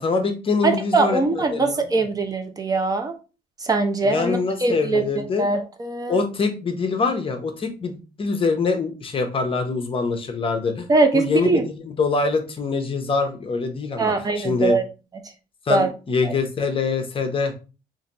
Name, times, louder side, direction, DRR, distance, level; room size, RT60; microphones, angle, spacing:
voice 1, 0.0-1.8 4.0-5.5 6.1-10.9 11.1-14.8 15.7-17.5, left 4 dB, 30° left, 5 dB, 0.8 m, -24 dB
voice 2, 0.6-3.1 3.6-6.2 10.9-11.7 14.0-14.8 15.7-15.9 16.2-16.3, right 3 dB, 20° right, 6 dB, 0.7 m, -22 dB
4.0 x 2.6 x 2.9 m, 0.32 s
cardioid pair, 110°, 17 cm